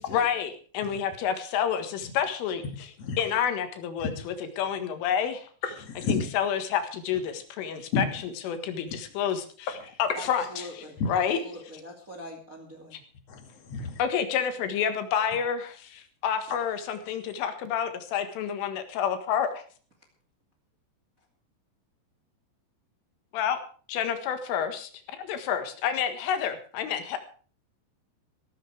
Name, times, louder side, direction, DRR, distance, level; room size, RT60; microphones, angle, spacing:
voice 1, 0.1-2.9 3.2-5.5 6.1-10.6 11.1-11.4 14.0-19.7 23.3-23.6 23.9-27.2, left 8 dB, 85° left, 8 dB, 4.2 m, -29 dB
voice 2, 5.8-6.3 7.9-8.0 11.0-11.1 13.3-14.0, left 4 dB, 45° left, 6 dB, 2.4 m, -30 dB
voice 3, 10.1-13.0, left 1 dB, 25° right, 3 dB, 1.9 m, -43 dB
15.5 x 13.5 x 4.8 m, 0.41 s
omnidirectional pair, 5.6 m